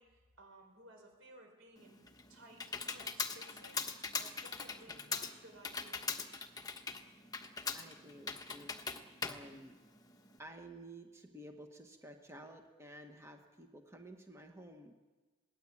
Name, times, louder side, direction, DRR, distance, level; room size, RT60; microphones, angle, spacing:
voice 1, 0.0-3.8 4.2-6.2, right 1 dB, 90° right, 3 dB, 5.6 m, -58 dB
Computer keyboard, 1.8-10.4, left 5 dB, 20° left, 1.2 m, -41 dB
voice 2, 7.7-9.8 10.4-14.9, right 1 dB, 15° right, 4 dB, 1.5 m, -53 dB
22.0 x 18.0 x 8.6 m, 1.3 s
head